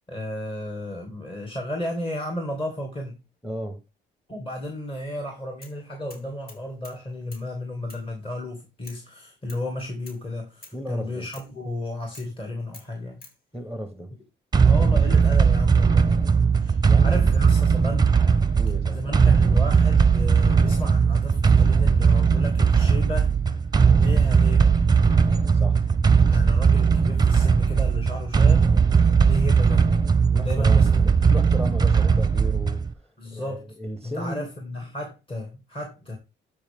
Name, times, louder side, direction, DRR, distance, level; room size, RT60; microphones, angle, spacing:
voice 1, 0.1-3.2 4.3-13.2 14.6-16.2 16.6-18.2 18.9-23.3 23.9-24.7 26.3-28.8 29.2-30.0 30.3-30.9 31.2-31.4 33.2-33.6 34.0-36.2, left 1 dB, 25° left, 2.4 m, -33 dB
voice 2, 3.4-3.8 10.7-11.3 13.5-14.1 16.9-17.6 18.6-19.2 25.5-25.8 30.3-34.5, equal, 5° left, 1.1 m, -34 dB
sound 1, 5.6-5.8 6.1-7.0 7.3-7.5 7.9-8.1 8.8-9.1 9.5-9.7 10.1-10.2 10.6-10.8 11.3-11.5 12.1-12.3 12.7-13.4, left 2 dB, 50° left, 3.5 m, -48 dB
sound 2, 14.5-32.9, right 5 dB, 20° right, 0.7 m, -19 dB
12.5 x 5.1 x 3.6 m
cardioid pair, 90°, 20 cm